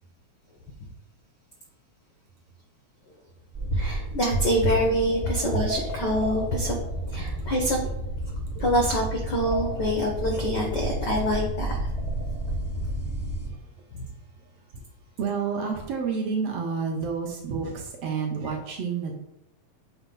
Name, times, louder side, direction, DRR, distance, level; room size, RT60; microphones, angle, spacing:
sound 1, 3.5-13.5, right 1 dB, 35° right, 0.6 m, -30 dB
voice 1, 3.7-6.8 7.1-7.8 8.6-11.8 13.9-14.1, equal, 70° left, 0 dB, 1.0 m, -26 dB
voice 2, 15.2-19.1, right 5 dB, 70° right, 2 dB, 1.6 m, -29 dB
8.0 x 2.8 x 5.3 m, 0.85 s
omnidirectional pair, 3.3 m